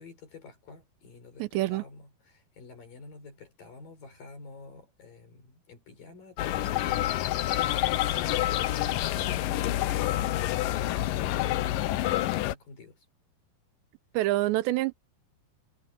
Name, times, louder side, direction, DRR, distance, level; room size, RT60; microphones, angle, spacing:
voice 1, 0.0-1.4 1.7-13.1, left 4 dB, 50° left, 5.9 m, -48 dB
voice 2, 1.4-1.8 14.1-14.9, right 17 dB, 80° right, 3.0 m, -26 dB
sound 1, 6.4-12.5, left 14 dB, 90° left, 1.9 m, -28 dB
omnidirectional pair, 5.1 m